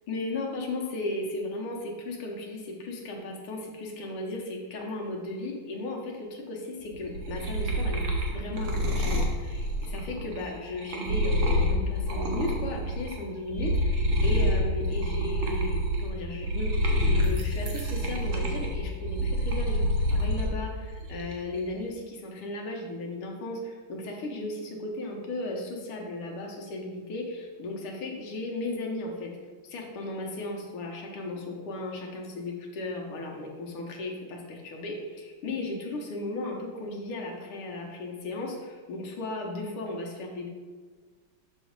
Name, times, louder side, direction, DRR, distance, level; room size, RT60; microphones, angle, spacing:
voice 1, 0.1-29.3 29.6-40.5, left 2 dB, 85° left, 0 dB, 1.9 m, -35 dB
sound 1, 6.9-13.2 13.5-20.5 20.9-21.6, equal, 55° right, 0.8 m, -27 dB
6.8 x 3.1 x 5.1 m, 1.5 s
omnidirectional pair, 2.4 m